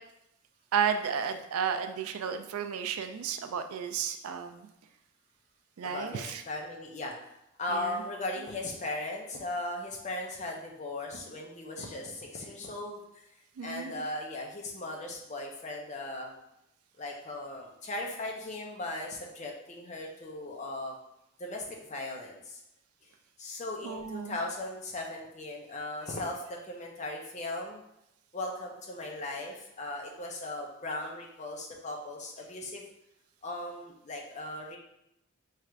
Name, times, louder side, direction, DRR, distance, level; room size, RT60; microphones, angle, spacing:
voice 1, 0.7-4.7 5.8-6.4 7.7-8.0 13.6-14.0 23.8-24.4, right 7 dB, 80° right, 8 dB, 0.3 m, -33 dB
voice 2, 5.8-7.1 7.6-13.3 13.6-16.3 17.0-21.0 21.4-22.6 23.0-23.1 23.4-27.8 28.3-32.8 33.4-34.8, left 2 dB, 30° left, 0 dB, 0.6 m, -38 dB
3.2 x 2.5 x 4.4 m, 0.83 s
head